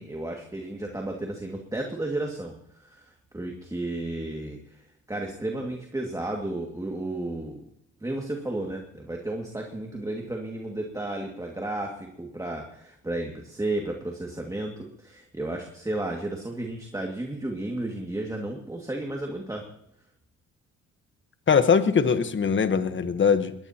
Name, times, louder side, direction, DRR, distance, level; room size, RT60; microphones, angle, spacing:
voice 1, 0.0-7.6 8.0-19.7, right 2 dB, 10° right, 1 dB, 2.3 m, -33 dB
voice 2, 21.5-23.5, left 6 dB, 40° left, 10 dB, 1.3 m, -21 dB
21.0 x 19.5 x 3.0 m, 0.75 s
cardioid pair, 90°, 30 cm